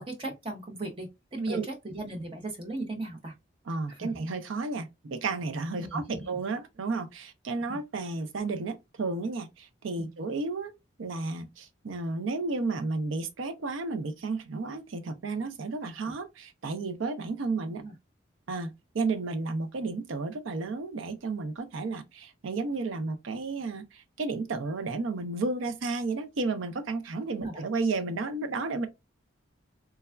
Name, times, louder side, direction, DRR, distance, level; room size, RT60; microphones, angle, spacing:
voice 1, 0.0-3.3 3.9-4.1 5.8-6.2 10.0-10.1 16.0-16.1 17.7-17.9 27.4-27.6, right 2 dB, 25° right, 0.6 m, -37 dB
voice 2, 3.7-17.8 18.5-28.9, right 3 dB, 75° right, 0.5 m, -32 dB
3.2 x 2.3 x 2.2 m
head